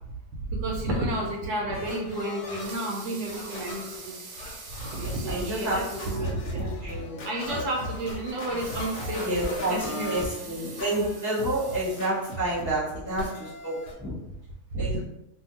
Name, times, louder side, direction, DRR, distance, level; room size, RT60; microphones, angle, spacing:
voice 1, 0.5-4.2 4.9-6.7 7.2-10.1 14.7-15.0, right 1 dB, 75° right, -1 dB, 1.1 m, -31 dB
sound 1, 1.7-11.2 11.5-12.3 13.2-13.9, left 2 dB, 90° left, 1.3 m, -41 dB
Water tap faucet / Sink (filling or washing) / Liquid, 2.6-6.3 6.8-6.9 7.2-7.3 8.4-12.6 13.1-13.2, right 4 dB, 90° right, 1.3 m, -44 dB
Scratching (performance technique), 4.8-13.3, left 2 dB, 65° left, 1.0 m, -40 dB
voice 2, 5.3-5.8 6.6-7.6 9.2-14.1 14.8-15.0, right 1 dB, 15° left, -10 dB, 0.9 m, -30 dB
2.7 x 2.6 x 2.8 m, 0.91 s
omnidirectional pair, 1.8 m